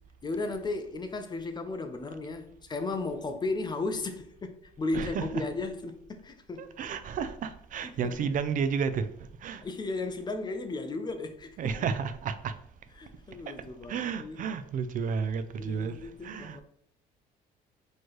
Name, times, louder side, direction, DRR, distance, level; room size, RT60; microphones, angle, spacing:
voice 1, 0.2-6.8 7.8-8.2 9.6-11.7 13.0-14.5 15.6-16.6, left 3 dB, 25° left, 0.5 m, -35 dB
voice 2, 4.9-5.4 6.6-9.1 9.4-9.6 11.6-12.5 13.9-16.6, right 6 dB, 50° right, 0.4 m, -32 dB
4.4 x 3.1 x 3.0 m
cardioid pair, 110°, 18 cm